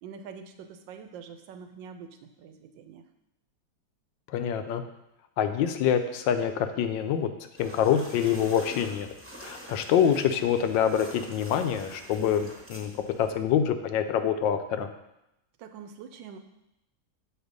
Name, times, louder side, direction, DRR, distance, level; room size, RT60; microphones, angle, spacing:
voice 1, 0.0-3.0 15.6-16.4, right 6 dB, 85° right, 8 dB, 1.3 m, -45 dB
voice 2, 4.3-4.8 5.4-7.3 7.6-9.1 9.4-12.9 13.2-14.9, left 8 dB, 80° left, 8 dB, 1.3 m, -26 dB
sound 1, 7.6-13.3, equal, 10° right, 1.0 m, -46 dB
7.1 x 4.3 x 5.2 m, 0.85 s
omnidirectional pair, 2.0 m